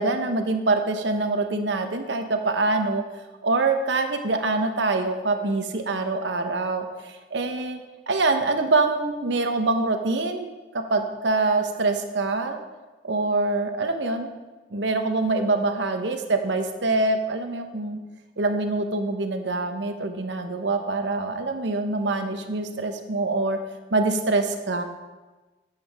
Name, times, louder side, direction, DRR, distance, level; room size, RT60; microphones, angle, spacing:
voice 1, 0.0-3.0 3.4-7.8 8.1-10.5 10.7-12.6 13.0-14.3 14.7-18.0 18.4-23.6 23.9-24.8, right 3 dB, 75° right, 6 dB, 0.9 m, -25 dB
10.0 x 7.4 x 3.5 m, 1.2 s
head